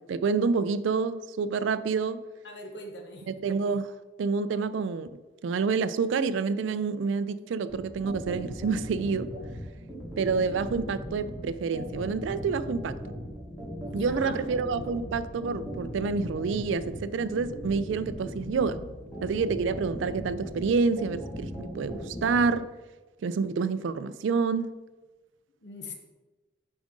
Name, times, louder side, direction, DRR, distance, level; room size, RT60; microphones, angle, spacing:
voice 1, 0.1-2.2 3.3-3.9 4.2-5.1 5.4-9.3 10.2-13.0 13.9-18.8 19.2-22.7 23.2-24.8, right 5 dB, 80° right, 0.3 m, -28 dB
voice 2, 2.4-3.3 13.8-14.4 25.6-25.9, left 2 dB, 65° left, 1.0 m, -42 dB
sound 1, 7.7-22.4, equal, ahead, 1.7 m, -38 dB
7.3 x 5.0 x 3.7 m
head